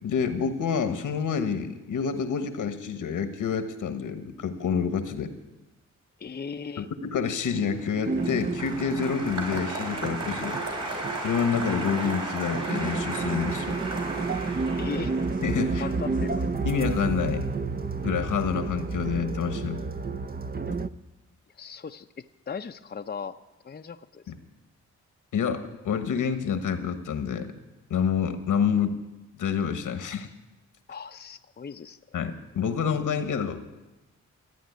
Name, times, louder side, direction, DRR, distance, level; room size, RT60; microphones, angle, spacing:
voice 1, 0.0-5.3 6.8-10.6 11.2-13.8 15.4-15.9 16.6-17.5 18.0-19.8 24.3-24.4 25.3-27.5 27.9-29.0 29.4-30.3 32.1-33.6, left 6 dB, 85° left, 9 dB, 1.3 m, -28 dB
voice 2, 6.2-6.9 14.8-15.2 15.8-16.4 21.6-22.1 22.5-23.4 23.6-24.2 30.9-32.0, left 6 dB, 30° left, 8 dB, 0.6 m, -37 dB
Applause, 7.6-18.0 18.3-18.9, right 2 dB, 60° right, 5.1 m, -35 dB
sound 1, 8.0-20.9, right 4 dB, 30° right, 0.7 m, -31 dB
14.5 x 9.3 x 9.3 m, 1.0 s
cardioid pair, 50°, 31 cm